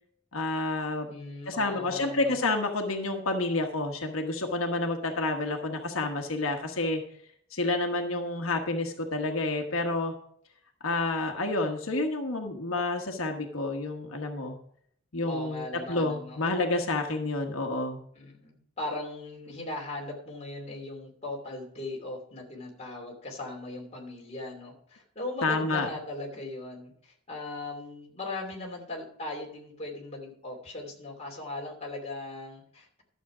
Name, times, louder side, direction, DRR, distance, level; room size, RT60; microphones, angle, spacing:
voice 1, 0.3-1.1 1.5-7.0 7.5-10.1 10.8-14.6 15.1-18.0 25.4-25.9, left 2 dB, 90° left, 3 dB, 1.3 m, -29 dB
voice 2, 1.1-2.4 15.2-16.4 18.1-33.0, left 2 dB, 30° left, -1 dB, 2.7 m, -39 dB
12.0 x 7.4 x 4.9 m, 0.64 s
head